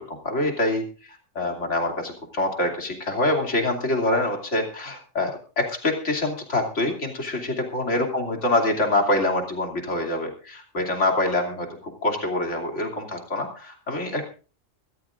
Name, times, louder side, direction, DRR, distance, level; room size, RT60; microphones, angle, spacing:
voice 1, 0.1-14.3, left 2 dB, 60° left, 2 dB, 3.3 m, -25 dB
23.5 x 14.5 x 2.5 m, 0.35 s
omnidirectional pair, 1.4 m